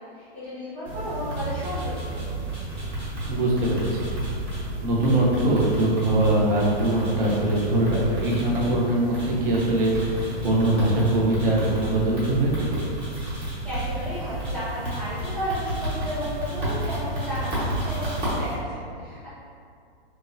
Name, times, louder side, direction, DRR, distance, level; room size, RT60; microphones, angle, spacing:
voice 1, 0.0-2.4 13.4-19.3, equal, 5° left, -16 dB, 0.4 m, -33 dB
sound 1, 0.8-18.5, right 1 dB, 20° right, 0.8 m, -31 dB
voice 2, 3.3-4.1 4.8-12.9, right 1 dB, 65° right, -4 dB, 0.8 m, -22 dB
3.0 x 2.1 x 2.5 m, 2.3 s
hypercardioid pair, 150°, 30 cm